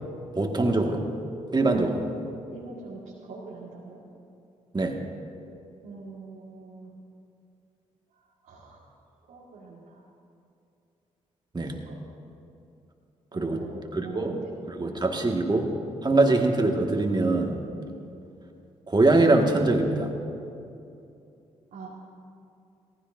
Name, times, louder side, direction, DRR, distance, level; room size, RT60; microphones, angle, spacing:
voice 1, 0.4-1.0 1.5-2.0 4.7-5.0 11.5-11.7 13.3-13.6 13.9-14.3 14.8-15.7 16.0-17.6 18.9-20.1, right 2 dB, 30° right, 2 dB, 2.0 m, -23 dB
voice 2, 2.5-4.0 5.8-6.9 8.1-8.8 9.3-10.0 11.6-12.0 13.3-15.0 16.1-16.2 17.8-18.0 21.7-21.9, right 3 dB, 80° right, -6 dB, 2.1 m, -42 dB
18.0 x 15.5 x 2.8 m, 2.6 s
hypercardioid pair, 45°, 15 cm